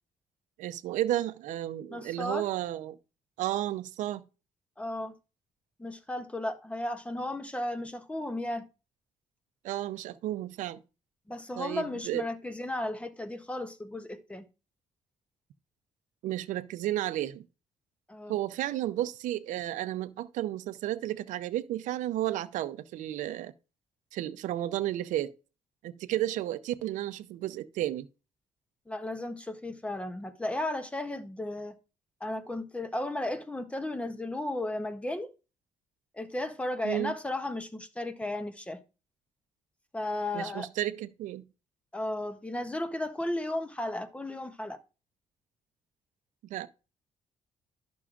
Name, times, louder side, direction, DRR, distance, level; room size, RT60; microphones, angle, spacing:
voice 1, 0.6-3.0 3.4-4.2 9.6-10.8 11.6-12.2 16.2-17.4 18.3-23.5 24.1-25.3 25.8-28.1 36.8-37.1 40.3-41.4 46.4-46.7, right 13 dB, 90° right, 0.5 m, -32 dB
voice 2, 1.9-2.5 4.8-5.1 5.8-8.6 11.3-14.5 18.1-18.4 28.9-31.8 32.2-35.3 36.1-38.8 39.9-40.7 41.9-44.8, left 1 dB, 10° left, 0.6 m, -34 dB
11.5 x 6.1 x 2.4 m
cardioid pair, 140°, 13 cm